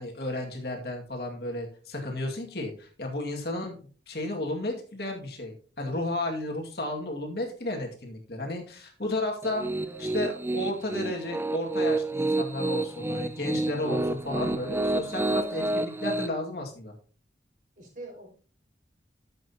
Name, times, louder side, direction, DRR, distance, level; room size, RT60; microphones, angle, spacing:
voice 1, 0.0-3.8 4.1-9.6 10.0-16.9, left 1 dB, 60° left, 1 dB, 2.2 m, -33 dB
Piano, 9.4-16.3, right 2 dB, 10° right, 0.4 m, -29 dB
voice 2, 9.8-10.2 17.8-18.3, right 2 dB, 45° right, -1 dB, 5.4 m, -45 dB
12.5 x 7.8 x 2.9 m, 0.39 s
head